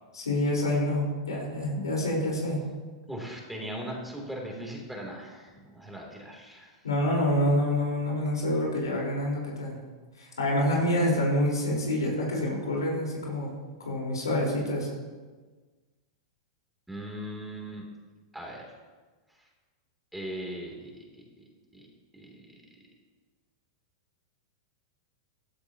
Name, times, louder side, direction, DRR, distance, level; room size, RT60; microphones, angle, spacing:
voice 1, 0.1-2.6 6.8-9.8 10.2-13.5 13.8-14.9, left 1 dB, 85° left, -2 dB, 4.5 m, -27 dB
voice 2, 3.1-6.8 16.9-17.8 18.3-18.6 20.1-21.4 21.7-21.9 22.1-22.4, right 1 dB, 5° right, -1 dB, 3.2 m, -39 dB
15.5 x 12.5 x 3.0 m, 1.4 s
hypercardioid pair, 105°, 2 cm